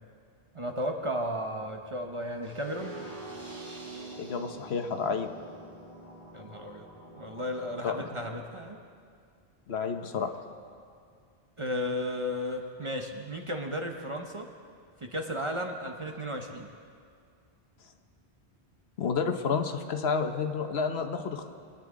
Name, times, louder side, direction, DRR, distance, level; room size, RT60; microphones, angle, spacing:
voice 1, 0.5-3.0 6.3-6.9 7.2-8.8 9.8-9.9 11.6-14.5 15.0-16.7, equal, 30° right, 3 dB, 0.8 m, -34 dB
sound 1, 2.4-8.4, right 2 dB, 50° right, 2.3 m, -45 dB
voice 2, 4.2-5.3 7.8-8.1 9.7-10.3 19.0-21.5, left 5 dB, 70° left, 6 dB, 1.1 m, -30 dB
23.0 x 10.0 x 3.7 m, 2.2 s
omnidirectional pair, 1.1 m